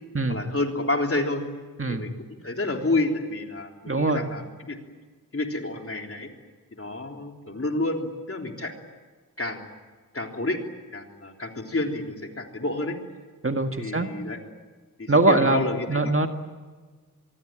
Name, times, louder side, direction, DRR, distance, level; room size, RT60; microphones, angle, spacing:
voice 1, 0.3-1.4 1.9-4.8 5.3-6.3 6.7-8.7 9.4-9.6 10.1-10.6 10.9-13.0 13.8-14.4 15.0-16.2, left 2 dB, 40° left, 3 dB, 3.6 m, -29 dB
voice 2, 3.9-4.2 13.4-14.1 15.1-16.3, right 2 dB, 40° right, 6 dB, 1.8 m, -22 dB
25.5 x 23.0 x 8.9 m, 1.4 s
wide cardioid pair, 80°, 35 cm